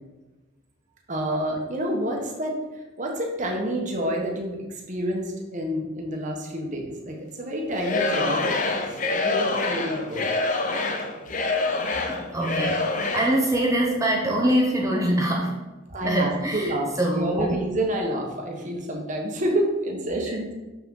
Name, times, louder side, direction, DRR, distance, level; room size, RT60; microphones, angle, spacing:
voice 1, 1.1-2.6 3.0-4.6 4.9-8.5 9.2-10.3 15.9-20.5, right 1 dB, 35° right, 0 dB, 1.2 m, -28 dB
Singing / Crowd, 7.8-13.4, left 3 dB, 35° left, 0.6 m, -26 dB
voice 2, 12.0-15.6 16.0-17.6 20.3-20.4, right 1 dB, 15° right, -1 dB, 0.8 m, -24 dB
6.9 x 5.9 x 3.8 m, 1.1 s
head